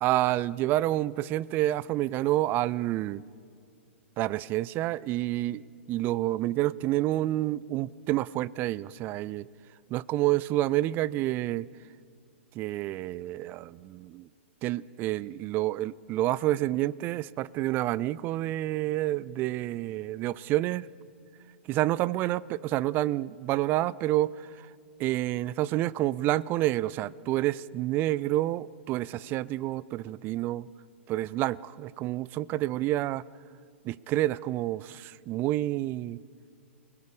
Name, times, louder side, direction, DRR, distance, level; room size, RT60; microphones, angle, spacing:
voice 1, 0.0-3.2 4.2-9.5 9.9-11.7 12.5-14.3 14.6-20.9 21.7-24.7 25.0-30.7 31.1-33.2 33.8-36.2, right 15 dB, 30° right, 0.4 m, -28 dB
28.5 x 19.5 x 5.0 m
figure-of-eight pair, 110°, 7 cm